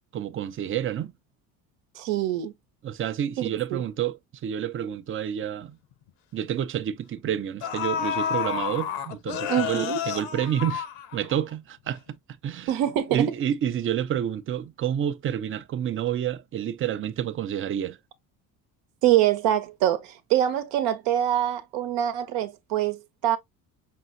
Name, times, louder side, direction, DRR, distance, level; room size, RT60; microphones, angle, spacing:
voice 1, 0.1-1.1 2.8-5.8 6.3-10.9 11.1-12.2 12.4-12.7 13.1-18.0, right 9 dB, 30° right, 0.4 m, -29 dB
voice 2, 1.9-2.5 3.7-3.8 9.5-10.0 12.7-13.3 19.0-23.4, right 12 dB, 70° right, 0.9 m, -24 dB
sound 1, 5.4-5.5 5.9-6.1 7.1-7.2 7.6-11.5 11.9-12.0, left 9 dB, 75° left, 0.9 m, -30 dB
5.4 x 2.6 x 2.5 m
hypercardioid pair, 70°, 43 cm